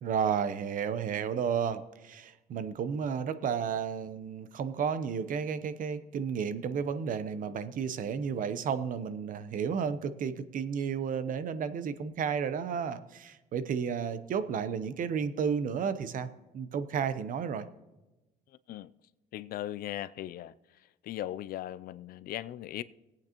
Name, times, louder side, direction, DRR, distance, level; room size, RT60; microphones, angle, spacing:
voice 1, 0.0-16.3 16.5-17.7, right 7 dB, 50° right, 0.8 m, -32 dB
voice 2, 19.3-20.5 21.0-22.8, left 13 dB, 60° left, 0.4 m, -38 dB
18.0 x 8.7 x 2.9 m
cardioid pair, 110°, 17 cm